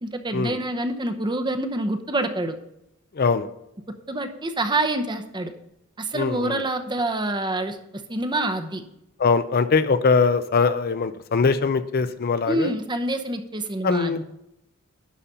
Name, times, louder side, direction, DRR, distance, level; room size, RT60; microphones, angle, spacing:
voice 1, 0.0-2.6 4.1-5.5 6.0-7.8 8.1-8.8 12.5-14.1, right 2 dB, 20° right, 7 dB, 0.8 m, -26 dB
voice 2, 3.1-3.5 6.1-6.6 9.2-12.7 13.8-14.2, left 4 dB, 45° left, 12 dB, 0.5 m, -22 dB
11.5 x 4.2 x 6.8 m, 0.85 s
head